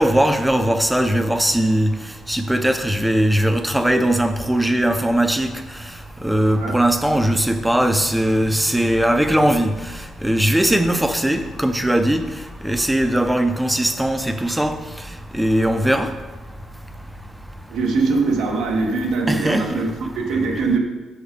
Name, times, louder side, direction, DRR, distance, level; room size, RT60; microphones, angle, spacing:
voice 1, 0.0-1.9 2.3-5.5 6.2-9.7 10.2-12.2 12.6-14.7 15.3-16.1 19.3-19.8, right 1 dB, 5° right, 8 dB, 0.6 m, -19 dB
voice 2, 17.7-20.8, right 3 dB, 85° right, 1 dB, 1.1 m, -22 dB
6.2 x 4.9 x 5.1 m, 1.2 s
cardioid pair, 90°, 0 cm